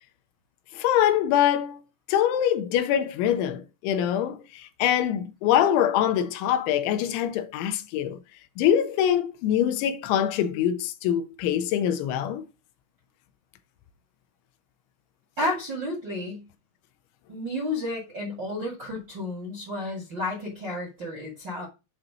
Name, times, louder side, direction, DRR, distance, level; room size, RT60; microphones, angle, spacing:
voice 1, 0.7-1.8 2.1-8.2 8.6-12.4, left 10 dB, 80° left, 2.9 m, -24 dB
voice 2, 15.4-16.4 17.3-21.7, left 1 dB, 40° right, 1.6 m, -31 dB
7.6 x 3.1 x 6.0 m
omnidirectional pair, 5.4 m